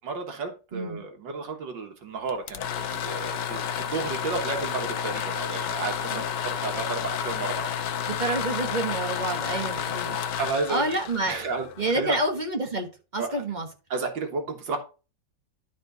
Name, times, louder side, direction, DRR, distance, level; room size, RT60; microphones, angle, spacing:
voice 1, 0.0-7.7 8.2-8.4 10.4-10.9 11.3-11.7 11.9-12.2 13.2-13.4 13.9-14.8, right 4 dB, 80° right, 2.0 m, -32 dB
voice 2, 0.7-1.0 6.1-6.2 8.1-10.2 10.7-11.5 11.8-12.9 13.1-13.7, right 2 dB, 30° right, 1.2 m, -28 dB
sound 1, 2.3-12.1, left 8 dB, 75° left, 1.3 m, -31 dB
11.0 x 4.5 x 3.9 m
omnidirectional pair, 2.0 m